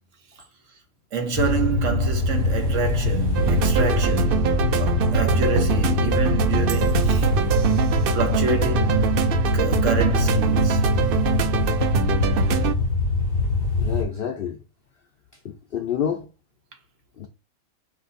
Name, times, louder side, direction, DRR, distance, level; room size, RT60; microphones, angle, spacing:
voice 1, 1.1-7.3 8.1-10.8, right 5 dB, 60° right, 1.2 m, -28 dB
sound 1, 1.3-14.0, left 3 dB, 45° right, 1.7 m, -23 dB
sound 2, 3.3-12.7, right 7 dB, 90° right, 0.4 m, -23 dB
voice 2, 13.7-14.6 15.4-16.3 17.2-17.3, left 8 dB, 70° left, 0.5 m, -28 dB
5.0 x 2.6 x 4.0 m
omnidirectional pair, 1.5 m